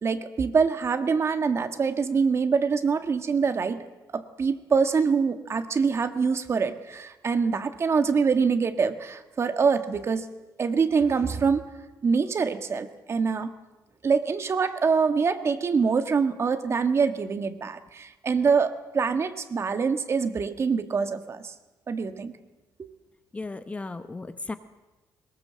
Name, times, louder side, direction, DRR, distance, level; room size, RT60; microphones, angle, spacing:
voice 1, 0.0-3.8 4.1-10.2 10.6-11.6 12.0-13.5 14.0-21.5 21.9-22.3 22.8-22.9, right 5 dB, 35° right, 9 dB, 1.6 m, -25 dB
voice 2, 23.3-24.5, left 3 dB, 15° left, 10 dB, 0.9 m, -35 dB
22.5 x 20.5 x 7.7 m, 1.1 s
cardioid pair, 145°, 8 cm